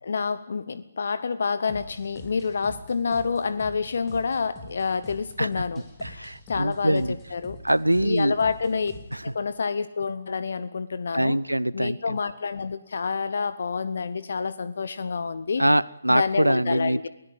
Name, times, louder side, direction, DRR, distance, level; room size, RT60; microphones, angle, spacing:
voice 1, 0.0-7.6 8.0-8.9 9.2-11.4 11.7-15.7 16.1-17.1, left 5 dB, 50° left, 15 dB, 0.9 m, -28 dB
sound 1, 1.7-9.3, left 1 dB, 15° left, 3.5 m, -45 dB
voice 2, 6.0-7.2 7.6-8.3 9.1-9.2 11.1-12.2 15.6-17.1, right 1 dB, 85° right, 21 dB, 0.7 m, -23 dB
23.5 x 16.5 x 7.9 m, 0.85 s
figure-of-eight pair, 140°, 0 cm